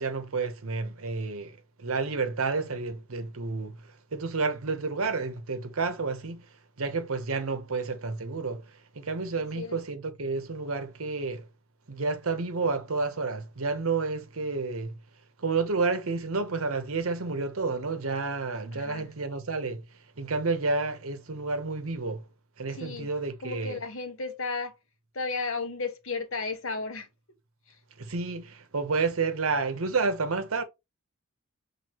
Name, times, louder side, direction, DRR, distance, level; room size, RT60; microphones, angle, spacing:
voice 1, 0.0-6.5 6.8-11.5 11.9-15.0 15.4-19.8 20.2-22.2 22.6-23.8 28.0-30.6, right 4 dB, 65° right, 0.8 m, -30 dB
voice 2, 9.4-9.8 18.7-19.1 22.7-23.1 23.4-24.7 25.1-27.1 27.7-27.8, left 4 dB, 60° left, 0.9 m, -34 dB
5.8 x 2.7 x 3.0 m
head